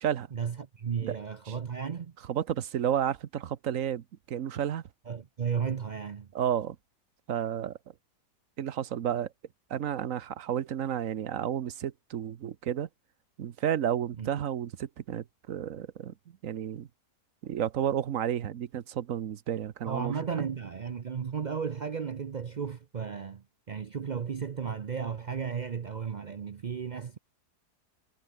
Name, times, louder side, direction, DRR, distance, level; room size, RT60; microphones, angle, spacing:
voice 1, 0.3-2.1 5.1-6.3 14.2-14.3 19.9-27.2, right 6 dB, 80° right, 0.4 m, -34 dB
voice 2, 2.3-4.8 6.3-6.8 7.3-7.8 8.6-9.3 9.7-12.9 13.4-16.1 16.4-16.9 17.4-20.2, right 9 dB, 55° right, 1.2 m, -31 dB
omnidirectional pair, 1.8 m